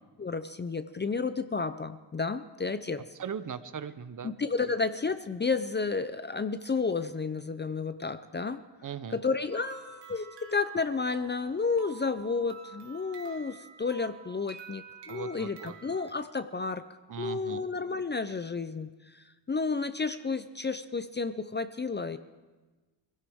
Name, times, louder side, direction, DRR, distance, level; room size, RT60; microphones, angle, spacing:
voice 1, 0.2-3.0 4.2-8.6 9.1-16.8 17.2-22.2, left 4 dB, 25° left, 11 dB, 0.4 m, -31 dB
voice 2, 3.2-4.3 4.6-4.8 8.8-9.2 15.1-15.7 17.1-17.6, right 7 dB, 45° right, 12 dB, 0.8 m, -39 dB
sound 1, 9.5-16.1, right 6 dB, 70° right, 1.7 m, -49 dB
23.0 x 16.5 x 3.6 m, 1.2 s
wide cardioid pair, 120°, 42 cm